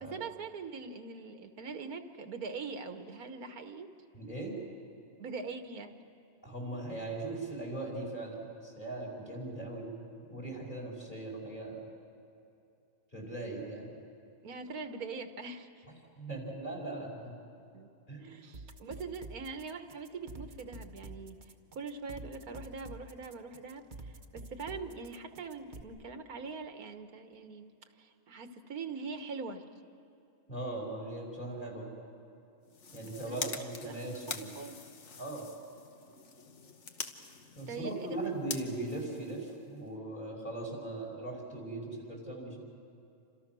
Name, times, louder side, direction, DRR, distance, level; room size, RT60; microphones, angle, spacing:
voice 1, 0.0-3.9 5.2-5.9 14.4-15.7 17.7-17.9 18.2-29.6 33.0-33.6 33.9-34.8 37.7-38.1, right 4 dB, 85° right, 7 dB, 1.7 m, -43 dB
voice 2, 4.1-4.5 6.4-9.9 10.2-11.8 13.1-13.9 16.2-17.3 18.1-18.4 30.5-31.9 32.9-34.6 35.2-35.5 37.5-42.6, right 2 dB, 30° left, -2 dB, 5.9 m, -39 dB
sound 1, 18.5-25.8, right 2 dB, 35° right, 1.1 m, -48 dB
sound 2, 32.6-39.9, left 5 dB, 55° left, 1.4 m, -45 dB
29.0 x 26.5 x 6.2 m, 2.6 s
omnidirectional pair, 1.5 m